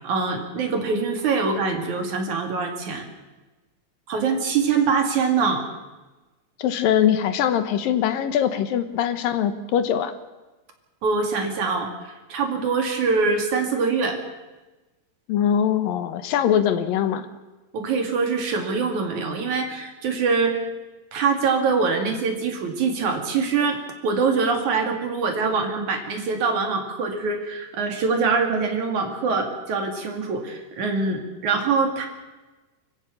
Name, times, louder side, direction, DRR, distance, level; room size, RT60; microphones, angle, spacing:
voice 1, 0.0-3.1 4.1-5.7 11.0-14.2 17.7-20.6 21.1-32.1, right 4 dB, 55° right, 4 dB, 3.6 m, -24 dB
voice 2, 6.6-10.1 15.3-17.3, left 9 dB, 75° left, 10 dB, 2.7 m, -22 dB
25.5 x 15.0 x 7.1 m, 1.1 s
omnidirectional pair, 4.2 m